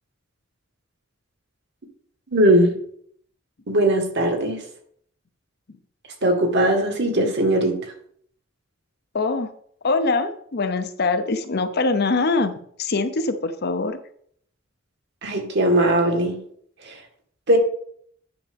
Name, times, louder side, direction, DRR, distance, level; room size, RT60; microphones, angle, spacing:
voice 1, 2.3-2.7 3.7-4.6 6.2-7.9 15.2-16.4 16.8-17.0 17.5-17.6, right 1 dB, 60° right, 3 dB, 1.6 m, -19 dB
voice 2, 9.1-9.5 9.8-12.5 12.8-14.0, left 3 dB, 55° left, 9 dB, 0.7 m, -23 dB
10.0 x 5.7 x 3.5 m, 0.64 s
head